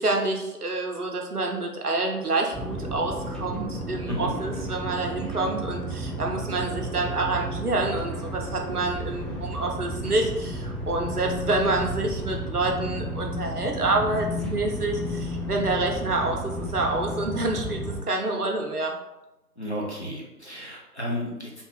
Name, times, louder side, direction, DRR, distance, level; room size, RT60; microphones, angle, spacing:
voice 1, 0.0-17.8 18.1-18.9, right 2 dB, 65° right, 1 dB, 0.7 m, -27 dB
sound 1, 2.5-18.0, equal, ahead, 0.3 m, -33 dB
voice 2, 4.0-4.4 19.6-21.6, equal, 45° left, -4 dB, 0.7 m, -33 dB
2.7 x 2.3 x 3.8 m, 0.97 s
figure-of-eight pair, 175°, 48 cm